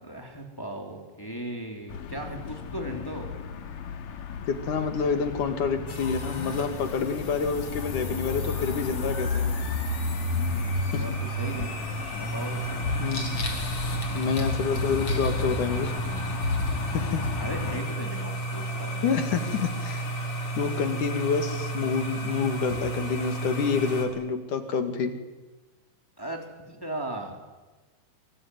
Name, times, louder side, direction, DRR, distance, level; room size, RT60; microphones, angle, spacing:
voice 1, 0.0-3.3 10.3-12.9 17.4-19.0 26.2-27.4, right 1 dB, 5° left, 2 dB, 3.5 m, -37 dB
sound 1, 1.9-17.8, left 6 dB, 85° left, 3.5 m, -36 dB
voice 2, 4.5-9.5 10.9-11.0 13.0-13.3 14.1-15.9 16.9-17.2 19.0-20.1 20.6-25.1, left 5 dB, 65° left, 7 dB, 3.6 m, -28 dB
sound 2, 5.9-24.0, equal, 45° left, 4.6 m, -31 dB
24.0 x 24.0 x 9.7 m, 1.2 s
omnidirectional pair, 3.9 m